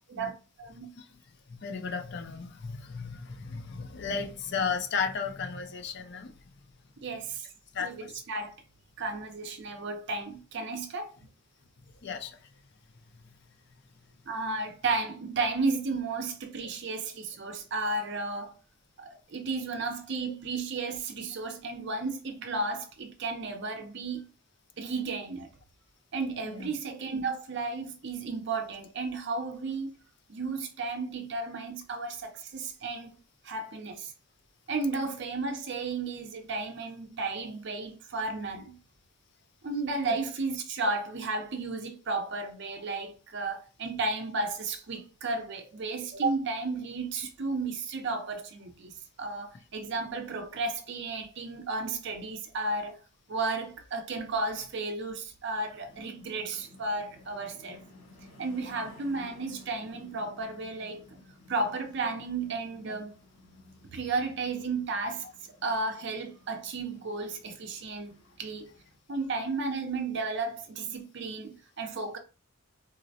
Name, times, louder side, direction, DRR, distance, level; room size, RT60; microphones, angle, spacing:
voice 1, 0.1-0.9 7.0-7.4 7.8-8.5 9.0-11.1 14.3-18.6 19.0-24.2 24.8-25.5 26.1-29.9 30.3-33.2 33.4-34.1 34.7-38.7 39.6-48.9 49.2-53.0 53.3-57.8 58.4-61.2 61.5-63.1 63.9-65.3 65.6-68.7 69.1-72.2, right 3 dB, 50° right, 0.5 m, -33 dB
voice 2, 1.5-6.3 7.7-8.1 12.0-12.4 26.5-26.7 65.2-65.3, left 5 dB, 50° left, 0.5 m, -34 dB
sound 1, 55.5-69.0, left 2 dB, 75° left, 1.6 m, -55 dB
3.8 x 2.0 x 2.7 m
head